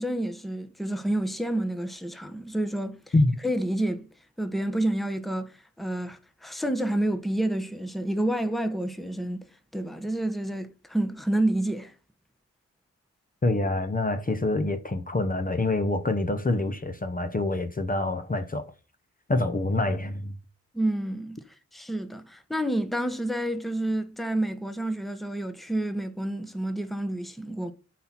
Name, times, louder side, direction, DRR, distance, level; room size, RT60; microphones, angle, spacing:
voice 1, 0.0-3.1 3.4-4.1 4.4-9.5 9.7-11.9 20.7-21.4 21.7-27.7, right 1 dB, ahead, 0.9 m, -29 dB
voice 2, 13.4-18.7 19.3-20.4, left 2 dB, 30° left, 0.8 m, -26 dB
8.3 x 4.3 x 5.9 m
wide cardioid pair, 85°, 29 cm